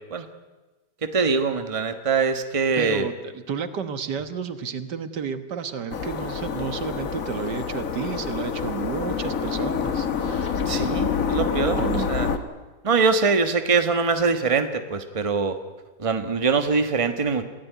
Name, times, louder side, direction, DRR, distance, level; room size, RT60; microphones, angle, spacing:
voice 1, 1.0-3.0 10.7-11.8 12.1-12.3 12.8-15.6 16.0-17.4, right 4 dB, 20° right, 8 dB, 1.2 m, -23 dB
voice 2, 2.8-10.6 11.8-12.3, right 6 dB, 85° right, 10 dB, 1.9 m, -31 dB
sound 1, 5.9-12.4, left 6 dB, 55° left, 1.7 m, -27 dB
27.0 x 15.5 x 9.3 m, 1.2 s
omnidirectional pair, 1.8 m